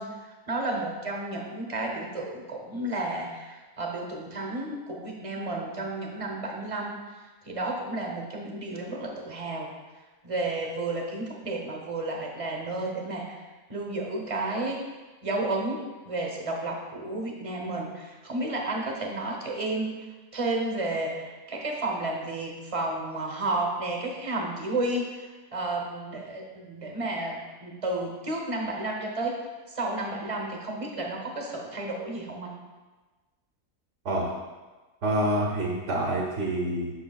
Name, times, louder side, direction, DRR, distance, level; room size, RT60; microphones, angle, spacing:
voice 1, 0.0-7.0 7.4-9.7 10.2-13.4 13.7-14.8 15.2-20.0 20.3-29.4 29.7-32.5, right 2 dB, 30° right, 1 dB, 0.8 m, -32 dB
voice 2, 35.0-36.9, right 1 dB, 60° right, -1 dB, 1.1 m, -27 dB
7.8 x 6.1 x 2.3 m, 1.3 s
omnidirectional pair, 1.5 m